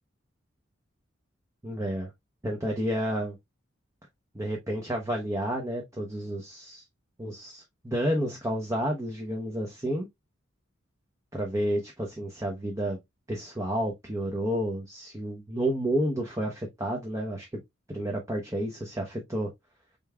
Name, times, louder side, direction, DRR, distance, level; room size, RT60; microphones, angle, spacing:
voice 1, 1.6-2.1 2.4-3.4 4.3-6.8 7.2-10.1 11.3-13.0 13.3-17.6 17.9-19.5, equal, 15° right, 0.8 m, -30 dB
5.2 x 3.4 x 2.3 m
head